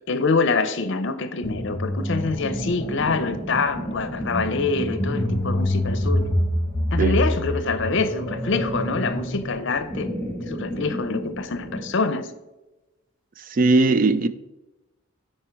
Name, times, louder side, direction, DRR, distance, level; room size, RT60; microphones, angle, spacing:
voice 1, 0.1-6.2 6.9-10.1 10.5-12.3, left 4 dB, 65° left, 0.6 m, -25 dB
dragon cry, 1.4-11.9, left 1 dB, 10° left, 2.1 m, -27 dB
voice 2, 13.5-14.3, right 3 dB, 40° right, 0.4 m, -18 dB
9.8 x 4.4 x 4.5 m
head